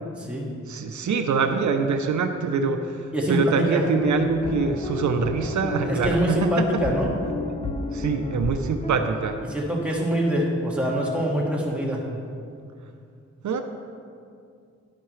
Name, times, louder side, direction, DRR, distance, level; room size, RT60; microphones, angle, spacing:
voice 1, 0.1-0.5 3.1-3.9 5.8-7.1 9.5-12.1, equal, 5° right, -4 dB, 1.8 m, -24 dB
voice 2, 0.7-6.6 7.9-9.4 13.4-13.6, right 5 dB, 80° right, 6 dB, 0.6 m, -24 dB
sound 1, 4.0-9.1, left 2 dB, 20° left, 0.5 m, -31 dB
11.0 x 10.5 x 3.2 m, 2.4 s
wide cardioid pair, 125°, 29 cm